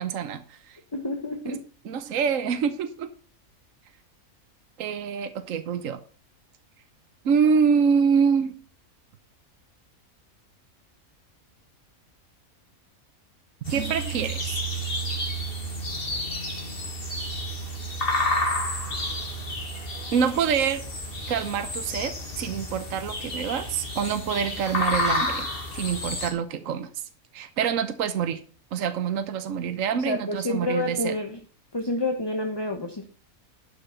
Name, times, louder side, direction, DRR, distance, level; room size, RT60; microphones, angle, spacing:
voice 1, 0.0-0.8 1.5-1.6 1.8-3.1 4.8-6.0 7.2-8.5 13.7-14.5 20.1-20.8 21.3-25.5 25.7-26.9 27.3-28.4 28.7-31.2, right 6 dB, 65° right, 10 dB, 1.3 m, -26 dB
voice 2, 0.9-1.6 29.9-31.4 31.7-33.1, left 2 dB, 20° left, 4 dB, 1.1 m, -29 dB
sound 1, 13.6-26.3, left 1 dB, 40° left, 2.5 m, -30 dB
12.0 x 6.1 x 5.7 m, 0.41 s
omnidirectional pair, 1.5 m